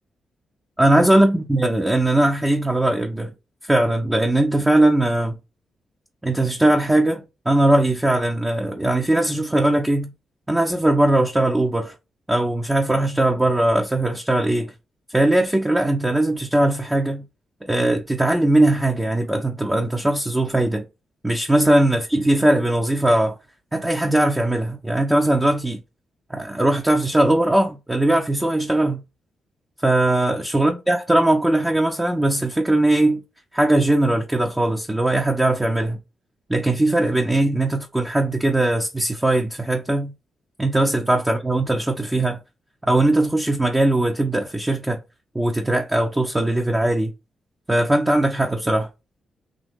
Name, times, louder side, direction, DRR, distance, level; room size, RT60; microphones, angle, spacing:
voice 1, 0.8-3.3 3.6-5.4 6.2-10.1 10.5-11.9 12.3-14.7 15.1-17.2 17.6-20.8 21.2-23.3 23.7-25.8 26.3-29.0 29.8-33.2 33.5-36.0 36.5-40.1 40.6-42.4 42.8-45.0 45.3-47.1 47.7-48.9, right 1 dB, 15° right, 0.6 m, -20 dB
3.7 x 2.7 x 3.5 m
supercardioid pair, 50°, 0 cm